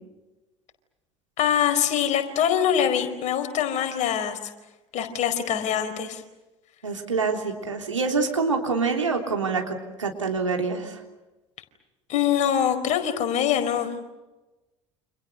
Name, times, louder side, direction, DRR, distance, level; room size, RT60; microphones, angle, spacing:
voice 1, 1.4-4.4 4.9-6.2 12.1-14.0, left 9 dB, 50° left, 8 dB, 4.6 m, -24 dB
voice 2, 6.8-11.0, right 4 dB, 85° right, 2 dB, 3.5 m, -26 dB
30.0 x 27.0 x 6.6 m, 1.1 s
figure-of-eight pair, 65°, 16 cm